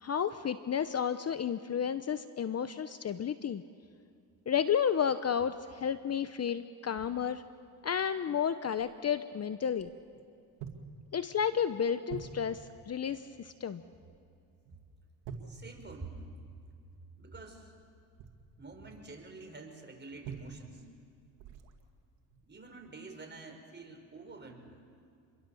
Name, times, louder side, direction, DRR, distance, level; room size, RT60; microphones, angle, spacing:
voice 1, 0.0-3.6 4.5-7.4 7.8-9.9 11.1-12.6 12.9-13.8, left 8 dB, 35° left, 12 dB, 0.8 m, -32 dB
sound 1, 6.9-7.2 7.8-7.9 8.8-9.0 9.8-10.3 10.6-11.0 11.3-11.6 12.1-12.8 14.0-14.4 14.6-14.8 15.2-16.4 18.0-19.1 20.2-20.9 21.4-21.8 22.3-22.5, right 6 dB, 85° right, 2.2 m, -47 dB
voice 2, 15.4-16.2 17.2-17.7 18.6-20.9 22.4-24.8, right 3 dB, 25° right, 3 dB, 5.3 m, -48 dB
27.5 x 22.5 x 7.1 m, 2.4 s
supercardioid pair, 80°, 42 cm